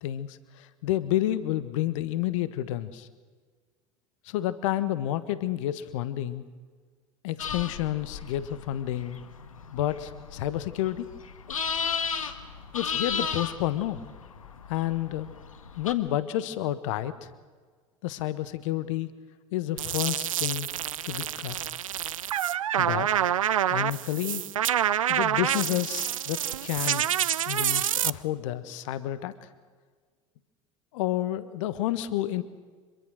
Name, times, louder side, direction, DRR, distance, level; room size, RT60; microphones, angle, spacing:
voice 1, 0.0-3.1 4.2-6.4 7.2-9.2 9.7-11.1 12.7-14.0 14.7-15.3 15.8-17.1 18.0-19.1 19.5-20.7 21.0-21.6 22.8-23.1 23.7-24.4 25.1-27.1 27.5-29.3 30.9-32.4, left 13 dB, 70° left, 14 dB, 1.4 m, -30 dB
sound 1, 7.4-15.9, left 6 dB, 90° left, 1.5 m, -35 dB
sound 2, 19.8-28.1, right 10 dB, 85° right, 0.6 m, -27 dB
26.5 x 22.0 x 6.4 m, 1.5 s
hypercardioid pair, 70°, 17 cm